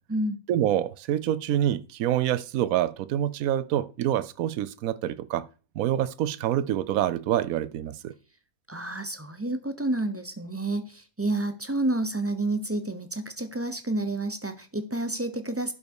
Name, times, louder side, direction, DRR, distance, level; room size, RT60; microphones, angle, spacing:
voice 1, 0.5-5.4 5.8-8.1, right 11 dB, 75° right, 1.0 m, -26 dB
voice 2, 8.7-15.7, right 2 dB, 15° right, 0.6 m, -29 dB
11.5 x 5.2 x 4.7 m
omnidirectional pair, 1.5 m